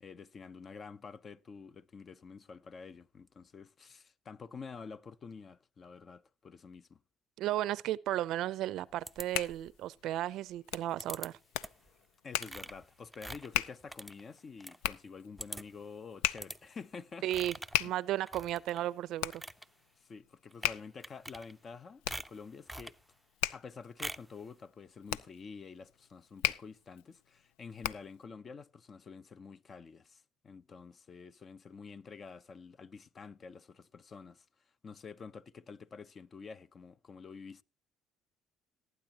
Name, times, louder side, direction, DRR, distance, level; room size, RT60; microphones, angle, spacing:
voice 1, 0.0-7.0 12.2-17.3 20.0-23.0 23.5-34.4 34.8-37.6, left 5 dB, 40° left, 0.7 m, -49 dB
voice 2, 7.4-11.4 17.2-19.4, right 13 dB, 65° right, 0.5 m, -34 dB
Hands, 8.9-28.2, left 13 dB, 85° left, 0.5 m, -39 dB
sound 1, 9.1-9.8 11.0-11.3 11.6-11.9 12.4-14.8 15.1-15.2 15.4-15.8 16.4-16.6 17.3-17.8 18.3-18.8 19.2-19.7 20.5-20.7 21.0-21.7 22.1-23.0 24.0-24.3, right 1 dB, 5° right, 0.6 m, -44 dB
18.0 x 9.2 x 2.9 m
supercardioid pair, 80°, 0 cm